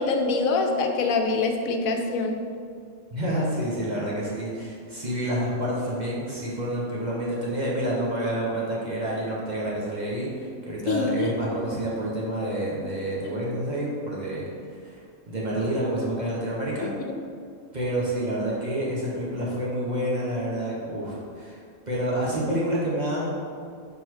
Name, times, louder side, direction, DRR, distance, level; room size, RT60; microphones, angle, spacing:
voice 1, 0.0-2.4 10.9-11.4 13.2-13.4 17.0-17.1, left 3 dB, 80° left, 4 dB, 1.0 m, -25 dB
voice 2, 3.1-14.4 14.8-15.0 15.3-16.9 17.7-21.6 21.9-23.3, right 1 dB, 35° right, -6 dB, 1.2 m, -28 dB
5.4 x 4.2 x 4.6 m, 2.2 s
omnidirectional pair, 1.4 m